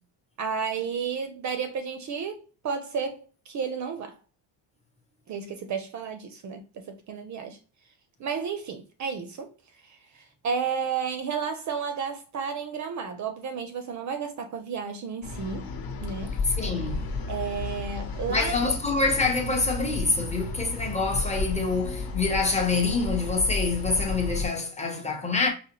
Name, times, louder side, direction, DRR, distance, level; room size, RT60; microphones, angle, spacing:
voice 1, 0.4-2.4 2.6-4.2 5.3-7.6 8.2-9.5 9.8-15.7 16.0-16.4 17.3-18.5, right 6 dB, 40° right, 0.5 m, -32 dB
sound 1, 15.2-24.5, left 4 dB, 50° left, 0.9 m, -33 dB
voice 2, 16.4-17.0 18.3-25.5, left 3 dB, 15° left, 0.6 m, -26 dB
4.7 x 2.1 x 2.8 m
cardioid pair, 145°, 46 cm